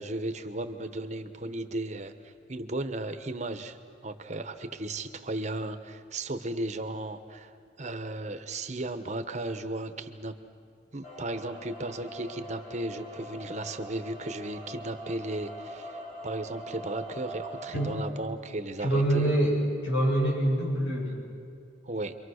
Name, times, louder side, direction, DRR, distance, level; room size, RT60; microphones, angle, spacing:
voice 1, 0.0-3.8 4.0-10.4 10.9-19.3 21.8-22.2, right 2 dB, 35° right, 8 dB, 1.0 m, -35 dB
sound 1, 11.0-18.1, right 1 dB, 40° left, 3.2 m, -42 dB
voice 2, 18.8-19.6 19.8-21.2, right 1 dB, 70° left, -3 dB, 8.0 m, -25 dB
29.5 x 24.0 x 6.5 m, 2.4 s
head